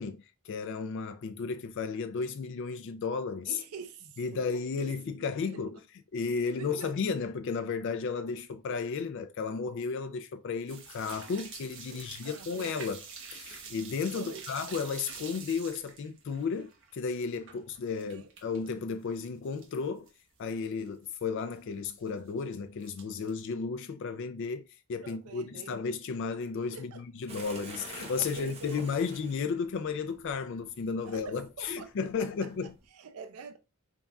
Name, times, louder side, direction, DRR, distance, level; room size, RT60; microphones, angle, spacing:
voice 1, 0.0-3.6 4.2-5.8 6.1-13.0 13.3-20.1 20.4-24.6 24.9-32.7, left 5 dB, 55° left, 0.4 m, -33 dB
voice 2, 3.5-4.5 4.8-5.6 6.4-7.1 11.9-12.7 14.1-14.4 17.8-18.3 25.0-25.7 26.7-27.1 28.2-28.9 31.0-32.5 32.9-33.6, right 5 dB, 80° right, 0.5 m, -47 dB
sound 1, 10.7-18.7 19.0-19.8 20.1-20.2 20.6-20.7 20.9-21.1 21.9-22.4 22.8-23.5, right 5 dB, 60° right, 1.0 m, -47 dB
sound 2, 27.3-32.9, right 2 dB, 30° right, 0.9 m, -49 dB
4.0 x 3.5 x 2.3 m
head